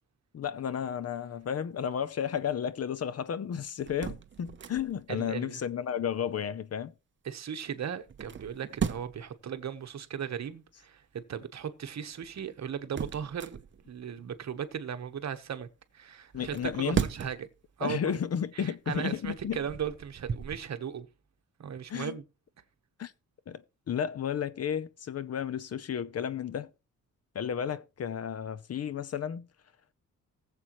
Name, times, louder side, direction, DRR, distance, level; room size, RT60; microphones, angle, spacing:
voice 1, 0.3-6.9 16.3-17.0 17.8-19.6 21.9-22.2 23.0-23.1 23.5-26.7 27.3-29.5, left 8 dB, 45° left, 0.6 m, -33 dB
sound 1, 3.8-5.1 8.0-9.3 12.2-14.0 16.3-17.6 18.1-18.3 19.0-20.6, right 7 dB, 35° right, 0.7 m, -36 dB
voice 2, 5.1-5.5 7.2-13.6 13.9-15.7 15.9-17.4 17.8-18.2 18.6-21.1 21.6-22.2, right 8 dB, 55° right, 1.2 m, -37 dB
19.5 x 7.5 x 3.1 m
wide cardioid pair, 130°, 33 cm